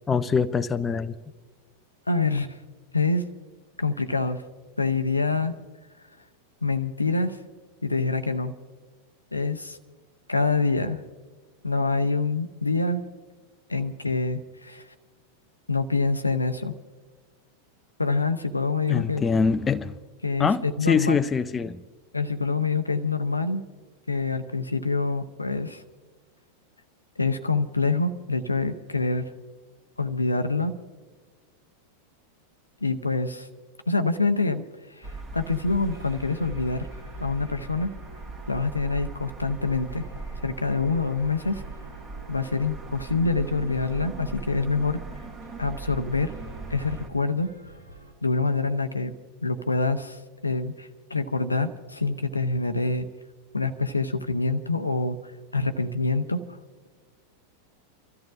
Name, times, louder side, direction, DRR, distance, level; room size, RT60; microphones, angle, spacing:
voice 1, 0.1-1.1 18.9-19.9 20.4-21.8, left 5 dB, 15° left, 10 dB, 0.5 m, -24 dB
voice 2, 2.1-2.6 2.9-3.2 3.8-4.4 4.8-5.5 6.6-7.4 7.8-8.5 9.3-9.8 10.3-11.0 11.6-13.0 13.7-14.8 15.7-16.7 18.0-19.2 20.2-21.2 22.1-23.6 24.1-25.8 27.2-29.3 30.0-30.8 32.8-33.5 33.9-34.6 35.0-35.1 35.3-36.9 37.2-37.9 38.5-40.0 40.4-41.6 42.3-45.0 45.6-46.3 46.7-47.5 48.2-49.1 49.4-53.1 53.5-55.2 55.5-56.6, left 3 dB, 80° left, 10 dB, 0.8 m, -26 dB
sound 1, 35.0-47.1, right 3 dB, 25° right, 1.6 m, -39 dB
sound 2, 35.5-48.1, equal, 90° right, 4.0 m, -50 dB
30.0 x 13.5 x 2.5 m, 1.3 s
figure-of-eight pair, 90°, 0 cm